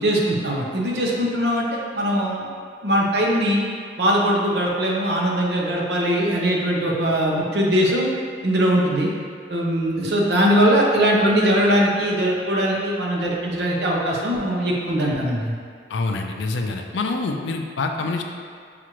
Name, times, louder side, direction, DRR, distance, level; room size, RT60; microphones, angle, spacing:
voice 1, 0.0-1.7 1.9-2.4 2.8-3.6 4.0-8.1 8.4-9.1 9.5-15.5, equal, 70° right, -2 dB, 0.7 m, -21 dB
voice 2, 15.9-18.2, left 3 dB, 85° left, 4 dB, 0.4 m, -26 dB
5.9 x 2.5 x 2.9 m, 2.1 s
head